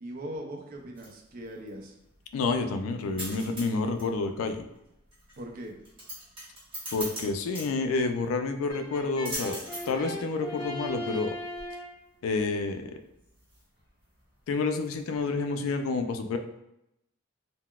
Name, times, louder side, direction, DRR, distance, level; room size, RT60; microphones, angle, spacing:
voice 1, 0.0-1.9 5.4-5.8, right 1 dB, 45° right, 1 dB, 0.5 m, -40 dB
sound 1, 0.7-15.5, right 1 dB, 25° right, 1.2 m, -44 dB
voice 2, 2.3-4.6 6.9-9.6 9.9-11.4 12.2-12.9 14.5-16.4, left 3 dB, 85° left, 7 dB, 0.3 m, -29 dB
Brass instrument, 8.7-12.0, equal, 20° left, 0.7 m, -38 dB
3.7 x 2.1 x 2.3 m, 0.84 s
head